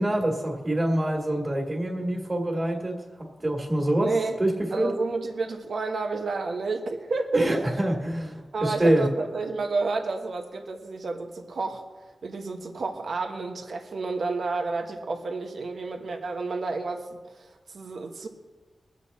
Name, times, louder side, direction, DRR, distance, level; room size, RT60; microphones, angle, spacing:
voice 1, 0.0-3.0 3.4-4.1 4.4-4.9 7.3-9.1, right 1 dB, 25° right, -2 dB, 2.3 m, -25 dB
voice 2, 4.0-4.4 4.7-7.5 8.5-11.9 12.2-18.3, right 3 dB, 70° right, 3 dB, 1.2 m, -30 dB
22.5 x 7.7 x 4.2 m, 1.3 s
wide cardioid pair, 105°, 0 cm